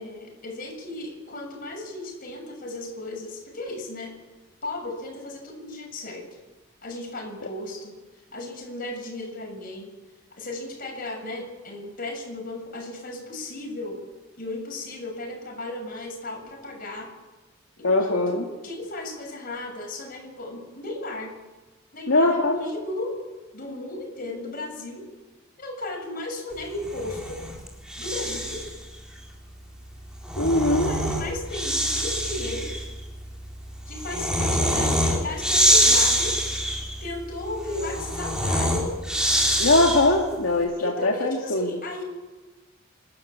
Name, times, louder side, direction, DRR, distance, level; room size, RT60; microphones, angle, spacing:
voice 1, 0.0-4.1 4.6-6.3 6.8-7.9 8.3-9.9 10.3-14.0 14.4-17.1 17.8-21.3 21.9-23.2 23.5-25.1 25.6-27.4 28.0-28.6 30.7-32.7 33.9-36.5 37.0-39.0 40.8-42.0, left 2 dB, 45° left, 1 dB, 7.2 m, -35 dB
voice 2, 17.8-18.4 22.1-22.6 30.4-30.9 39.6-41.7, left 2 dB, 70° left, 0 dB, 2.2 m, -21 dB
Breathing, 26.8-28.8 30.0-40.3, equal, 5° right, 4.1 m, -25 dB
27.5 x 13.0 x 8.7 m, 1.2 s
head